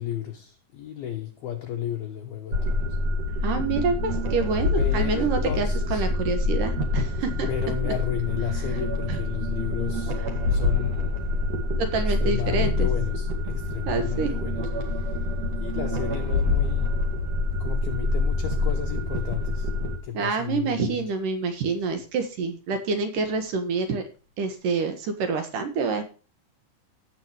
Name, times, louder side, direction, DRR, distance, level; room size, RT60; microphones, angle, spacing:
voice 1, 0.0-3.0 4.8-6.1 7.5-10.2 10.5-11.2 12.0-15.3 15.6-17.0 17.6-19.7 20.0-21.1, left 10 dB, 75° left, 2.3 m, -33 dB
sound 1, 2.5-20.0, left 2 dB, 45° right, 2.5 m, -26 dB
voice 2, 3.4-7.5 7.8-7.9 9.1-9.2 11.8-12.9 13.9-14.3 20.1-24.0 24.4-26.0, right 4 dB, 70° right, 2.1 m, -27 dB
17.0 x 7.5 x 3.1 m
omnidirectional pair, 5.9 m